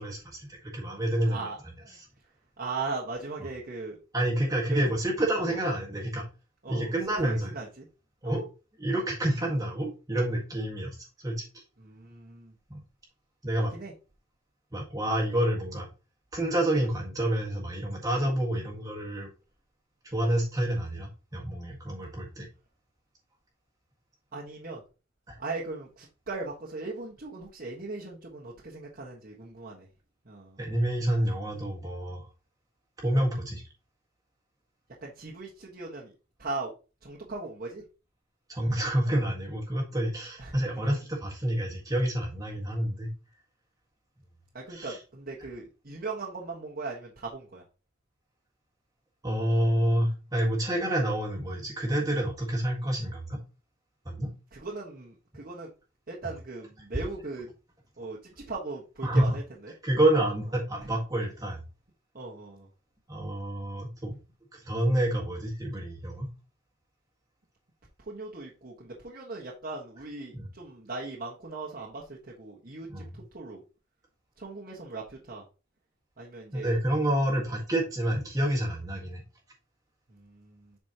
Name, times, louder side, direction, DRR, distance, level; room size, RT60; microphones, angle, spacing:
voice 1, 0.0-1.5 4.1-6.2 6.7-7.5 8.2-8.4 8.8-10.9 11.2-11.6 12.7-12.8 13.4-13.7 14.7-15.9 16.3-19.3 20.0-22.5 25.3-25.4 30.6-32.3 33.0-33.6 38.5-43.1 44.7-45.0 49.2-53.4 54.0-54.3 59.0-59.3 59.8-61.6 63.1-64.2 64.5-66.3 70.3-70.5 72.9-73.1 76.5-79.2, right 1 dB, 20° right, -2 dB, 1.6 m, -28 dB
voice 2, 1.3-2.0 2.6-4.0 4.7-4.8 5.5-5.6 6.6-6.9 7.2-7.8 8.2-8.4 11.8-12.5 13.7-13.9 24.3-24.8 25.4-29.9 30.2-30.6 35.0-36.1 36.4-36.7 37.0-37.8 40.4-40.9 44.5-47.6 54.5-55.7 56.1-57.5 58.0-59.7 62.1-62.7 68.0-73.6 74.4-75.4 76.2-76.7 80.1-80.8, right 3 dB, 45° right, -4 dB, 1.4 m, -39 dB
7.9 x 5.2 x 2.9 m, 0.32 s
head